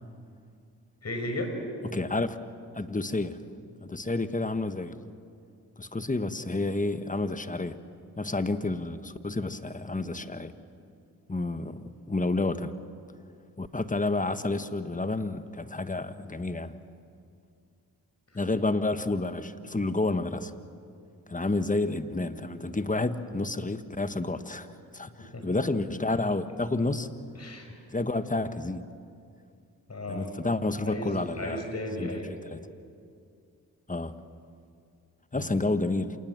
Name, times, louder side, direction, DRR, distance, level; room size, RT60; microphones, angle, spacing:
voice 1, 1.0-1.5 25.2-25.5 27.3-27.7 29.9-30.4 30.9-31.1 31.4-32.3 35.3-35.7, left 1 dB, 40° left, 4 dB, 5.8 m, -35 dB
voice 2, 1.9-3.4 3.8-5.1 5.8-7.8 8.2-10.5 11.3-12.7 13.6-16.7 18.3-20.5 21.3-24.7 24.9-27.1 27.9-28.8 30.1-31.6 32.0-32.2 32.4-32.6 33.9-34.2 35.3-36.2, left 2 dB, 20° left, 11 dB, 1.4 m, -30 dB
27.5 x 19.5 x 7.4 m, 2.3 s
supercardioid pair, 45°, 40 cm